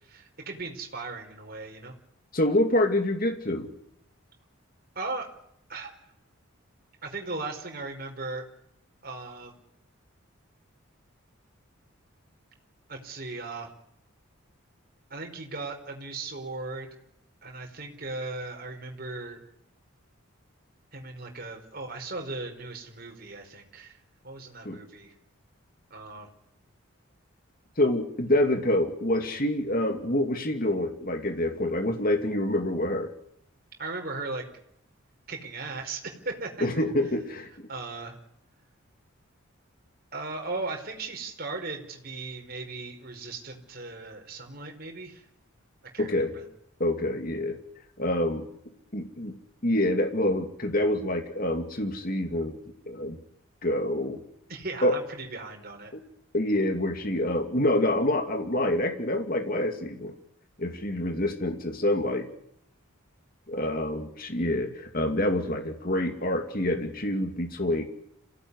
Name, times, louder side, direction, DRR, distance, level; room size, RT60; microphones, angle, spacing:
voice 1, 0.0-1.9 4.9-5.3 5.7-6.1 7.0-8.4 9.0-9.6 12.9-13.7 15.1-16.9 17.4-19.4 20.9-24.0 24.2-25.1 25.9-26.3 33.8-34.4 35.3-36.8 37.7-38.2 40.1-45.3 45.9-46.5 54.5-55.9, right 3 dB, 45° right, 2 dB, 4.9 m, -37 dB
voice 2, 2.3-3.7 24.6-24.8 27.8-33.1 36.6-37.5 46.0-46.3 46.8-47.6 48.0-48.4 48.9-49.3 49.6-53.2 53.6-54.2 54.8-54.9 55.9-56.0 56.3-60.1 60.6-62.3 63.5-67.8, left 1 dB, 40° left, 5 dB, 2.6 m, -26 dB
27.0 x 17.5 x 9.9 m, 0.75 s
head